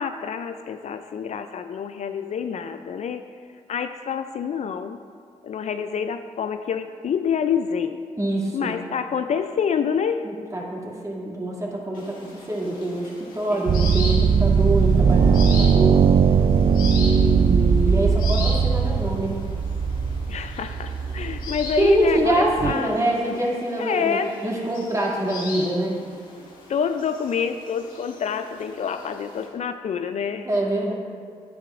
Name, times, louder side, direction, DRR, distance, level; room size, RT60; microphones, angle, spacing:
voice 1, 0.0-3.3 3.7-5.0 5.4-8.0 8.5-10.3 13.5-13.9 20.3-22.9 23.2-23.3 23.8-24.4 26.7-30.5, left 7 dB, 55° left, 9 dB, 0.4 m, -27 dB
voice 2, 8.2-8.7 10.2-16.0 17.0-19.4 21.8-26.0 30.4-30.9, right 1 dB, 25° right, -4 dB, 2.4 m, -25 dB
sound 1, 11.9-29.5, left 3 dB, 80° left, 1.7 m, -39 dB
sound 2, 13.7-22.7, right 6 dB, 40° right, 0.4 m, -19 dB
10.5 x 9.4 x 2.5 m, 2.1 s
supercardioid pair, 50°, 14 cm